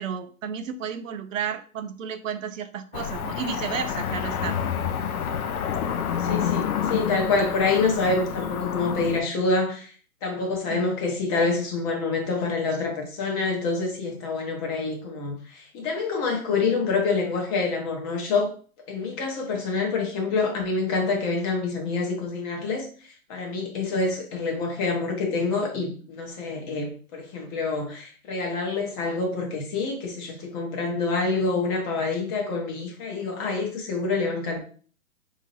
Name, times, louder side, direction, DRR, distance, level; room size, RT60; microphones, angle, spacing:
voice 1, 0.0-4.6 10.7-10.8, right 7 dB, 65° right, 0.5 m, -32 dB
Cricket / Motor vehicle (road), 2.9-9.2, left 8 dB, 75° left, 0.6 m, -28 dB
voice 2, 6.2-9.9 10.2-18.5 18.9-34.6, left 3 dB, 25° left, 0.9 m, -27 dB
4.4 x 2.8 x 3.0 m
hypercardioid pair, 130°, 44 cm